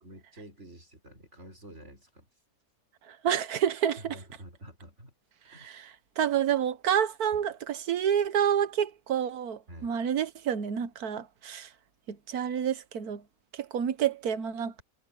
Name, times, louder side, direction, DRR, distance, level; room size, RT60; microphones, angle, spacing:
voice 1, 0.0-2.3 4.0-5.1 5.4-5.7 7.3-7.4 9.7-9.9, right 1 dB, 50° right, 5.4 m, -49 dB
voice 2, 3.1-4.2 5.5-11.7 12.1-13.2 13.6-14.8, right 9 dB, 80° right, 1.6 m, -29 dB
omnidirectional pair, 1.6 m